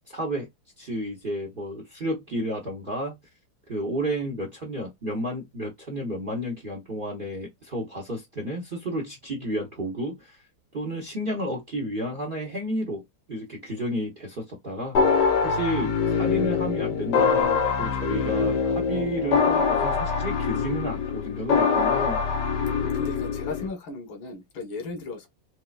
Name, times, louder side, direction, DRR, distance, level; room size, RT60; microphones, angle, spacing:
voice 1, 0.1-0.5 0.8-3.1 3.7-10.4 10.7-13.0 13.3-22.2, equal, 45° right, 0.7 m, -32 dB
sound 1, 14.9-23.7, left 5 dB, 65° left, 1.3 m, -24 dB
voice 2, 22.8-25.3, left 3 dB, 85° left, 2.0 m, -35 dB
4.6 x 2.2 x 2.3 m
omnidirectional pair, 2.1 m